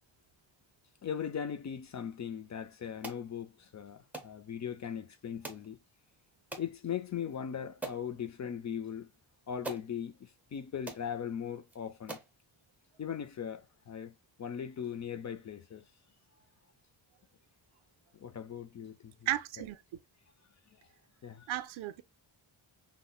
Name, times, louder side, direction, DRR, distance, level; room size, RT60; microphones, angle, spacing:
voice 1, 1.0-5.8 6.6-9.1 9.5-12.2 13.0-15.8 18.1-19.3 19.6-19.7 20.7-20.8 21.2-21.5, left 8 dB, 40° left, 0.4 m, -39 dB
sound 1, 3.0-3.2 4.1-4.3 5.4-5.7 6.5-6.7 7.3-7.4 7.8-8.1 9.1-9.2 9.6-9.9 10.5-10.6 10.9-11.1 11.7-11.8 12.1-12.3, right 3 dB, 5° right, 0.6 m, -42 dB
voice 2, 19.3-19.8 21.5-22.0, right 13 dB, 85° right, 0.6 m, -34 dB
5.4 x 2.1 x 2.2 m
wide cardioid pair, 140°, 46 cm